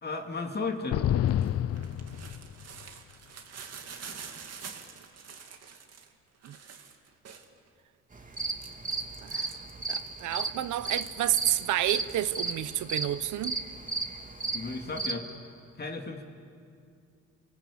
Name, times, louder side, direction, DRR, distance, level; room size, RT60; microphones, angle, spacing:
voice 1, 0.0-1.0 14.5-15.3 15.8-16.2, left 3 dB, 35° left, 2.3 m, -34 dB
sound 1, 0.9-2.8, left 11 dB, 50° left, 0.6 m, -28 dB
sound 2, 1.3-7.7 8.2-10.4 10.7-12.5, right 6 dB, 55° right, 2.5 m, -46 dB
sound 3, 8.1-15.1, right 3 dB, 25° right, 2.5 m, -34 dB
voice 2, 9.9-13.5, right 12 dB, 75° right, 0.9 m, -30 dB
29.5 x 19.0 x 8.5 m
cardioid pair, 90°, 30 cm